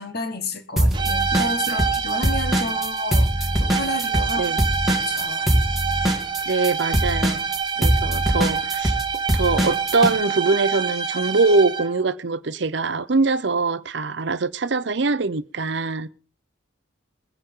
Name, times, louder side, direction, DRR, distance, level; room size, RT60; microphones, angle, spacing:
voice 1, 0.0-4.6 5.0-5.5 7.8-8.0, left 2 dB, 50° left, 1.6 m, -31 dB
sound 1, 0.8-10.1, equal, ahead, 2.0 m, -22 dB
sound 2, 0.9-12.0, right 6 dB, 25° right, 0.8 m, -26 dB
voice 2, 6.5-7.4 7.8-9.0 9.3-16.1, right 3 dB, 60° right, 0.7 m, -23 dB
22.0 x 10.0 x 3.8 m
head